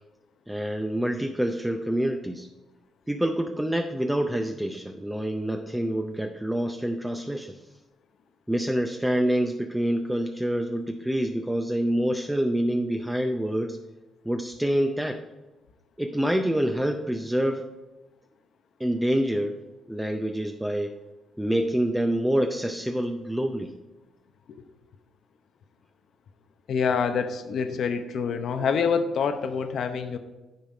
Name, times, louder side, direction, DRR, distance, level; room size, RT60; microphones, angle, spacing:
voice 1, 0.5-2.5 3.1-7.6 8.5-13.8 14.2-15.2 16.0-17.6 18.8-19.6 19.9-20.9 21.4-23.7, right 1 dB, 5° right, 4 dB, 0.5 m, -26 dB
voice 2, 26.7-30.2, left 6 dB, 65° left, 8 dB, 0.7 m, -26 dB
10.5 x 4.1 x 4.9 m, 1.1 s
cardioid pair, 90°, 0 cm